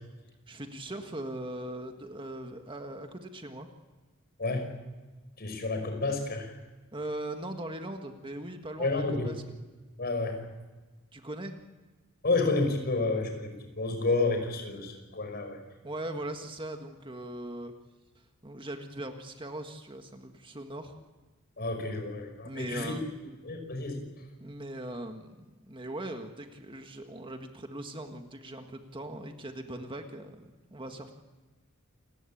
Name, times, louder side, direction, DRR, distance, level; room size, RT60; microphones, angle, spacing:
voice 1, 0.5-3.7 6.9-9.4 11.1-11.6 15.8-17.7 18.4-21.0 22.4-23.0 24.4-31.1, right 1 dB, 25° right, 5 dB, 1.7 m, -40 dB
voice 2, 5.4-6.5 8.8-9.3 10.0-10.4 12.2-15.6 21.6-22.9 23.4-24.0, left 3 dB, 45° left, 5 dB, 5.7 m, -30 dB
28.5 x 19.5 x 8.7 m, 1.2 s
head